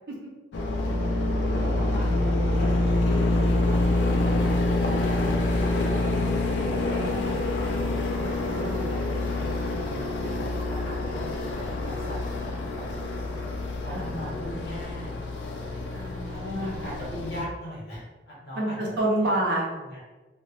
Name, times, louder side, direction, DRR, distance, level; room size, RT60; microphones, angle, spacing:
sound 1, 0.5-17.4, left 2 dB, 90° left, 0.4 m, -26 dB
voice 1, 1.6-3.3 3.6-6.0 6.5-7.5 8.2-13.3 13.8-15.7 16.3-18.8 19.2-19.3 19.7-20.0, equal, 65° left, -6 dB, 1.0 m, -41 dB
voice 2, 6.6-7.3 8.2-8.9 13.9-14.5 15.9-16.7 18.5-19.6, right 1 dB, 75° right, -2 dB, 0.7 m, -29 dB
3.4 x 2.1 x 2.4 m, 1.2 s
head